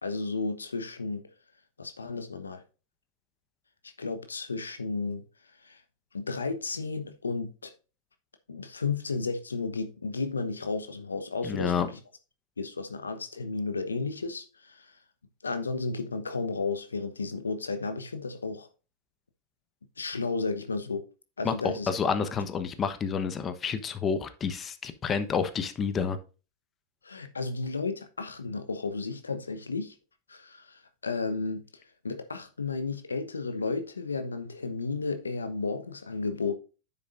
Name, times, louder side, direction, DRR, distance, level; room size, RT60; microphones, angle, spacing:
voice 1, 0.0-1.2 1.8-2.6 4.0-5.2 5.6-5.8 6.1-7.7 8.5-12.0 12.6-14.9 15.4-18.7 20.0-21.0 21.4-21.9 27.0-29.9 30.3-31.7 32.0-36.5, left 4 dB, 85° left, 1.1 m, -33 dB
voice 2, 11.4-11.9 21.4-26.2, left 6 dB, 25° left, 1.1 m, -29 dB
9.8 x 7.3 x 2.6 m
figure-of-eight pair, 95°, 0 cm